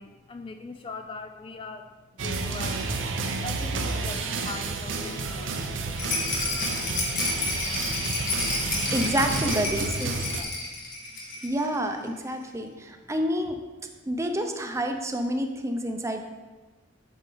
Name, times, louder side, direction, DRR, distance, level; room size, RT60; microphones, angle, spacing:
voice 1, 0.0-3.0 3.4-5.8 9.1-9.5 9.9-10.0 10.4-11.2, left 3 dB, 25° left, 6 dB, 0.4 m, -41 dB
sound 1, 2.2-10.4, right 3 dB, 80° right, 0.7 m, -31 dB
Rattle, 6.0-11.7 11.9-12.0 12.3-12.4, left 3 dB, 45° left, 1.5 m, -30 dB
voice 2, 8.9-10.1 11.4-13.6 14.1-16.2, equal, 15° right, 5 dB, 0.7 m, -28 dB
8.3 x 6.2 x 3.9 m, 1.2 s
head